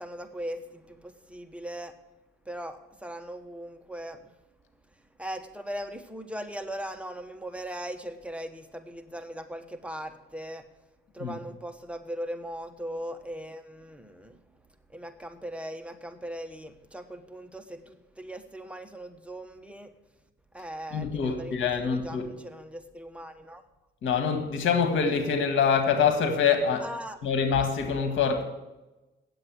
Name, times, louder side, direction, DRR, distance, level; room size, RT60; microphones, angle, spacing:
voice 1, 0.0-1.9 2.5-4.2 5.2-10.6 11.1-14.4 14.9-19.9 20.5-23.6 26.8-27.2, equal, 5° right, 1.1 m, -39 dB
voice 2, 20.9-22.3 24.0-26.9 27.2-28.4, left 6 dB, 80° left, 1.8 m, -25 dB
9.2 x 7.7 x 7.6 m
cardioid pair, 90°, 20 cm